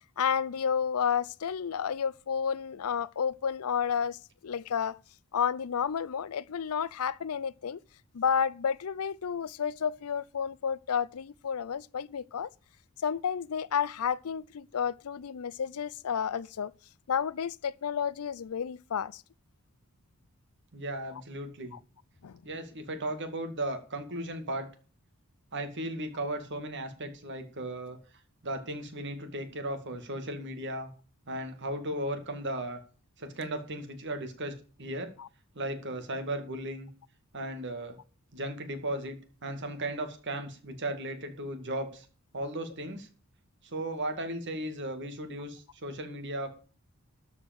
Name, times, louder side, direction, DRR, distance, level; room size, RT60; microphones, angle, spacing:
voice 1, 0.2-5.0 5.3-7.8 8.1-12.5 13.0-16.7 17.1-19.2 21.7-21.8 22.2-22.4 35.2-35.3, left 7 dB, 75° left, 0.5 m, -31 dB
voice 2, 20.7-21.7 22.4-24.7 25.5-28.0 28.4-30.9 31.3-32.8 33.2-35.1 35.5-36.9 37.3-38.0 38.3-42.1 42.3-43.1 43.6-46.5, right 1 dB, 55° right, 2.3 m, -36 dB
12.5 x 5.1 x 7.7 m
head